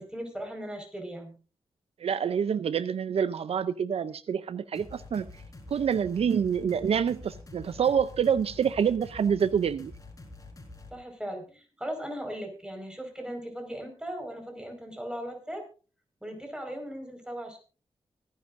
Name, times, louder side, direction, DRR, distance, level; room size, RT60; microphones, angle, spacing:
voice 1, 0.0-1.3 10.9-15.6 16.2-17.6, equal, 10° right, 4 dB, 4.9 m, -38 dB
voice 2, 2.0-5.4 5.7-9.9, right 7 dB, 70° right, 14 dB, 0.5 m, -27 dB
sound 1, 4.7-10.9, left 2 dB, 30° left, 4.4 m, -47 dB
24.5 x 10.5 x 2.6 m, 0.36 s
cardioid pair, 85°, 11 cm